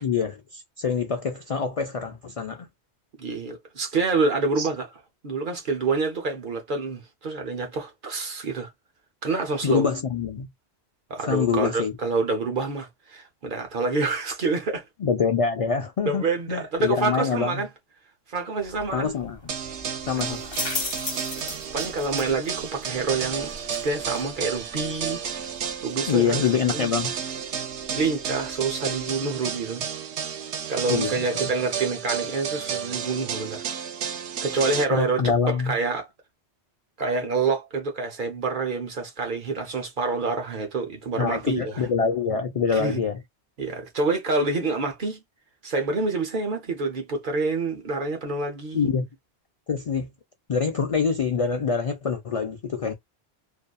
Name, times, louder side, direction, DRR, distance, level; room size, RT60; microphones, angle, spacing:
voice 1, 0.0-2.7 4.6-4.7 9.6-10.5 11.3-12.0 15.0-17.6 18.9-19.5 20.1-20.6 26.1-27.1 30.9-31.5 34.9-35.7 41.1-43.2 48.7-49.1 49.7-50.1 50.5-52.9, left 6 dB, 65° left, 0.3 m, -25 dB
voice 2, 3.2-4.9 5.2-8.7 9.2-9.9 11.1-14.8 16.1-17.7 18.3-19.1 20.1-20.3 21.1-25.5 25.8-26.9 27.9-29.8 30.7-33.6 34.4-36.1 37.0-41.9 42.7-43.0 43.6-45.2 45.6-48.9, right 3 dB, 55° right, 0.8 m, -27 dB
sound 1, 18.6-29.2, left 2 dB, 25° left, 0.9 m, -39 dB
sound 2, 19.5-34.8, right 7 dB, 85° right, 0.9 m, -32 dB
2.6 x 2.4 x 2.2 m
omnidirectional pair, 1.1 m